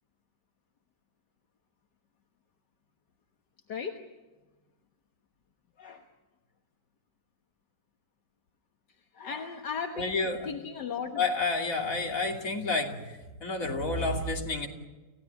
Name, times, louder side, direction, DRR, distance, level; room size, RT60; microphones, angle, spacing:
voice 1, 3.7-4.0 5.8-6.1 9.1-11.2, left 6 dB, 70° left, 3 dB, 2.0 m, -36 dB
voice 2, 10.0-10.5 11.1-14.7, left 3 dB, 45° left, 1 dB, 3.4 m, -30 dB
30.0 x 16.0 x 9.5 m, 1.2 s
omnidirectional pair, 1.9 m